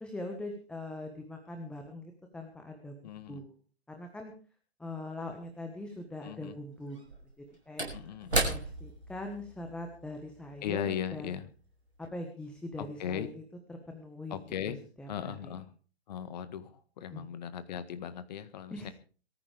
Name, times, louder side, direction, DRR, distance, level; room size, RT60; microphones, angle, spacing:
voice 1, 0.0-3.6 3.9-4.3 4.8-7.0 7.7-7.9 8.4-11.3 12.0-13.3 13.7-14.4 14.6-15.5 17.1-17.2 18.7-18.9, left 1 dB, 5° left, 3 dB, 1.4 m, -42 dB
voice 2, 3.0-3.4 6.2-6.5 7.9-8.4 10.6-11.5 12.8-13.3 14.3-14.8 15.1-15.7 16.1-18.9, left 9 dB, 40° left, 11 dB, 1.7 m, -38 dB
Slam / Wood, 5.3-5.4 6.9-11.6 11.9-12.1, right 2 dB, 80° right, 6.5 m, -36 dB
22.5 x 14.5 x 3.5 m, 0.39 s
figure-of-eight pair, 130°, 32 cm